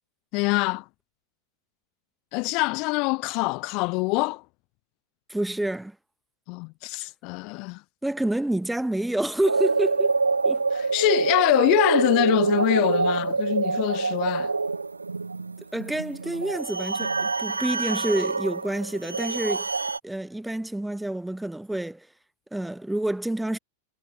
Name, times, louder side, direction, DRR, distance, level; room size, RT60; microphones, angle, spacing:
voice 1, 0.3-0.8 2.3-4.4 6.5-7.8 10.7-14.5, left 28 dB, 45° left, 0.4 m, -24 dB
voice 2, 5.3-6.0 8.0-10.2 10.4-10.6 15.7-19.7 20.0-22.1 22.5-23.6, right 1 dB, 5° right, 0.8 m, -28 dB
sound 1, 9.5-20.0, right 4 dB, 80° right, 0.7 m, -26 dB
figure-of-eight pair, 90°, 0 cm